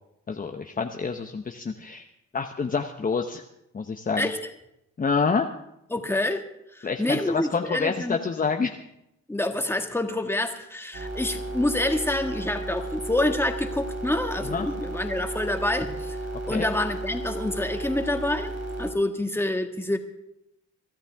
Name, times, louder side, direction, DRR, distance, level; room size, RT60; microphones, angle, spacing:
voice 1, 0.3-2.1 2.3-3.4 3.7-4.3 5.0-5.5 6.8-8.7 14.4-14.7 16.5-16.7, left 5 dB, 30° left, 4 dB, 0.9 m, -27 dB
voice 2, 5.9-6.4 6.7-8.2 9.3-16.2 16.4-18.5 18.8-20.0, left 1 dB, 10° left, 5 dB, 1.8 m, -27 dB
sound 1, 10.9-18.9, right 2 dB, 60° right, 3.1 m, -33 dB
23.5 x 13.0 x 3.6 m, 0.83 s
cardioid pair, 90°, 30 cm